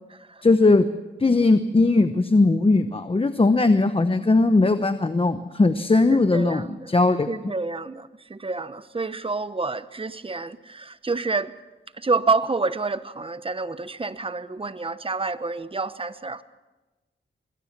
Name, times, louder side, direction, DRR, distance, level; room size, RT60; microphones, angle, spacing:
voice 1, 0.4-0.9 1.2-7.3, left 3 dB, 30° left, 1.0 m, -19 dB
voice 2, 6.3-6.9 7.3-11.5 12.0-16.4, right 3 dB, 25° right, 1.0 m, -28 dB
25.5 x 21.5 x 6.1 m
cardioid pair, 75°, 20 cm